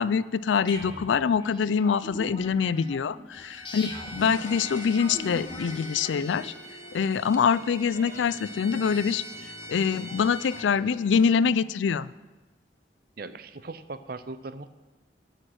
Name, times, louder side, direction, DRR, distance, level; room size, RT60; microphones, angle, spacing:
voice 1, 0.0-6.5 6.9-9.2 9.7-12.1, left 6 dB, 85° left, 17 dB, 0.4 m, -25 dB
sound 1, 0.7-6.5, left 1 dB, 25° left, 1.5 m, -41 dB
Bowed string instrument, 3.3-10.7, right 1 dB, 15° right, 0.8 m, -43 dB
sound 2, 4.2-11.3, left 3 dB, 45° left, 0.9 m, -47 dB
voice 2, 13.2-14.7, right 3 dB, 55° right, 13 dB, 0.6 m, -39 dB
15.0 x 6.5 x 6.4 m, 1.2 s
head